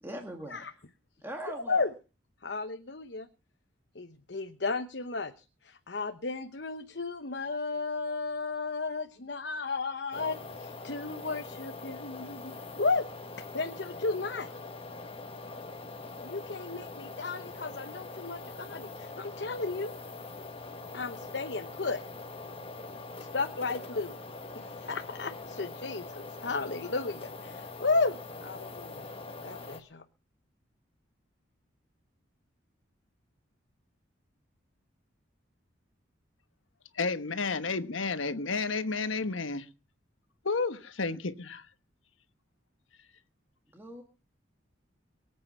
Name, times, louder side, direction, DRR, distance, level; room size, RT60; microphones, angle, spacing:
voice 1, 0.0-0.6 1.2-1.9 43.7-44.0, right 1 dB, 10° right, 3 dB, 1.8 m, -40 dB
voice 2, 1.5-1.9 2.4-3.3 3.9-13.1 13.4-14.5 16.2-19.9 20.9-22.0 23.2-24.2 24.5-29.0 29.4-30.0, left 3 dB, 60° left, 8 dB, 1.0 m, -34 dB
sound 1, 10.1-29.8, left 3 dB, 30° left, 1.5 m, -43 dB
voice 3, 37.0-39.7 40.4-41.6, left 4 dB, 85° left, 11 dB, 1.2 m, -31 dB
23.0 x 8.7 x 5.5 m, 0.34 s
head